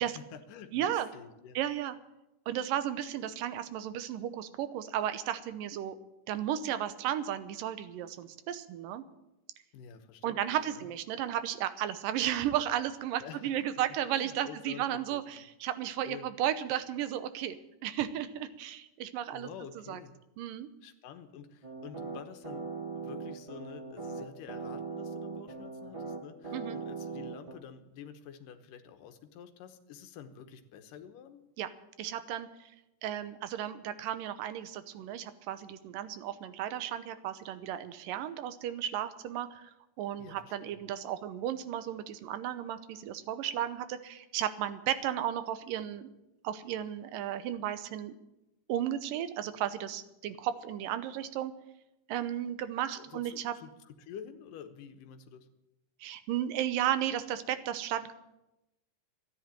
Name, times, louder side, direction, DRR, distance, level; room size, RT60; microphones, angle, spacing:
voice 1, 0.0-1.6 9.7-10.9 13.2-13.6 14.1-15.4 16.0-16.3 19.3-20.1 20.8-22.7 23.0-31.4 40.2-40.8 53.0-55.5, left 7 dB, 80° left, 8 dB, 2.7 m, -49 dB
voice 2, 0.7-1.1 1.6-2.0 2.5-5.9 6.3-9.0 10.2-17.6 17.8-19.5 19.9-20.0 20.4-20.7 26.5-26.8 31.6-31.7 32.0-32.7 33.0-39.7 40.0-46.1 46.4-48.1 48.7-51.5 52.1-53.5 56.0-58.1, right 11 dB, 80° right, 12 dB, 2.6 m, -34 dB
sound 1, 21.6-27.5, right 4 dB, 40° right, 0.4 m, -40 dB
13.5 x 10.5 x 9.0 m, 0.91 s
omnidirectional pair, 3.9 m